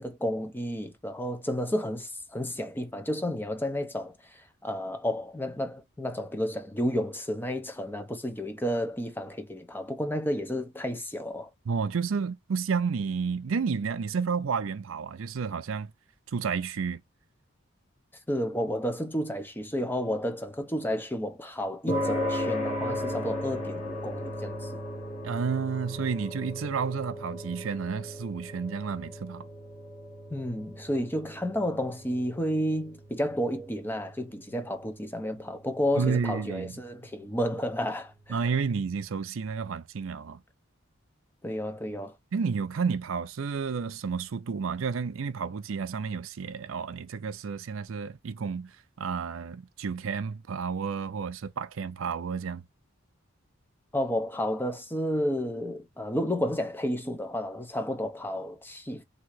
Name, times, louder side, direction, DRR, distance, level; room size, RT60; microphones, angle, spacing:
voice 1, 0.0-11.5 18.3-24.8 30.3-38.4 41.4-42.2 53.9-59.0, equal, 10° left, 0.7 m, -31 dB
voice 2, 11.7-15.9 16.3-17.0 25.2-29.5 36.0-36.7 38.3-40.4 42.3-52.6, right 5 dB, 70° right, 0.5 m, -31 dB
sound 1, 21.9-38.4, equal, 35° left, 1.5 m, -37 dB
3.7 x 2.8 x 4.6 m
head